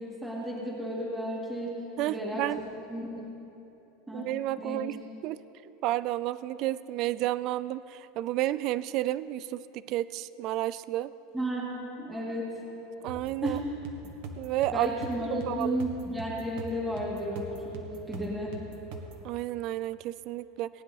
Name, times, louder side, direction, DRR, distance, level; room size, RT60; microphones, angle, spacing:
voice 1, 0.0-3.3 4.1-4.3 4.6-4.8 11.3-12.6 13.0-13.1 13.4-13.7 14.7-18.6, equal, 5° right, -6 dB, 2.1 m, -33 dB
voice 2, 2.0-2.6 4.1-5.4 5.8-11.1 13.0-13.6 14.4-14.9 15.3-15.8 19.2-20.7, right 15 dB, 40° right, 17 dB, 0.3 m, -31 dB
sound 1, 13.1-19.3, right 2 dB, 60° right, 1.5 m, -43 dB
19.0 x 10.0 x 4.1 m, 3.0 s
supercardioid pair, 165°, 0 cm